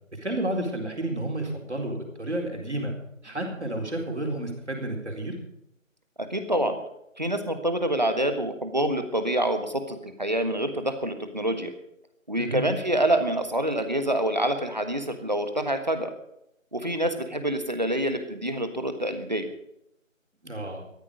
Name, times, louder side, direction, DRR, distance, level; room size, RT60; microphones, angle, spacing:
voice 1, 0.1-2.9 3.2-5.3 12.4-12.7 20.4-20.9, right 1 dB, 55° right, 1 dB, 4.3 m, -31 dB
voice 2, 6.3-6.8 7.2-11.7 12.3-16.1 16.7-19.5, right 1 dB, 35° right, 8 dB, 1.4 m, -26 dB
13.5 x 13.5 x 5.2 m, 0.79 s
figure-of-eight pair, 175°, 40 cm